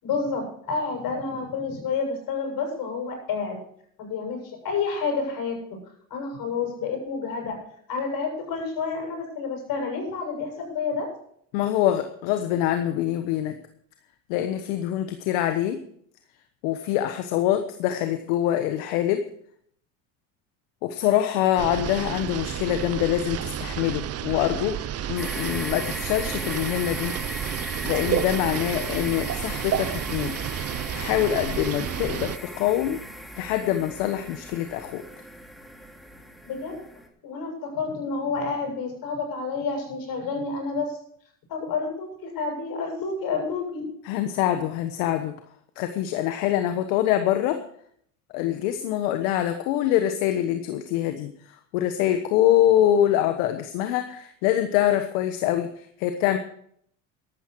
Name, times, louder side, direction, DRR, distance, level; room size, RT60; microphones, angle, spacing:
voice 1, 0.0-3.6 4.0-5.6 6.1-7.6 7.9-11.1 36.4-36.8 37.2-41.0 41.5-43.8, left 4 dB, 60° left, 3 dB, 7.6 m, -29 dB
voice 2, 11.5-13.6 14.3-15.8 16.6-19.2 20.8-24.7 25.1-27.5 27.8-30.3 30.9-33.0 33.4-35.0 44.1-45.3 45.8-47.6 48.3-51.3 51.7-55.7 56.0-56.4, left 12 dB, 75° left, 8 dB, 1.3 m, -24 dB
sound 1, 21.6-32.4, right 11 dB, 35° right, 0.8 m, -31 dB
sound 2, 25.2-37.1, equal, ahead, 3.2 m, -37 dB
13.5 x 12.5 x 4.8 m, 0.63 s
supercardioid pair, 85°, 40 cm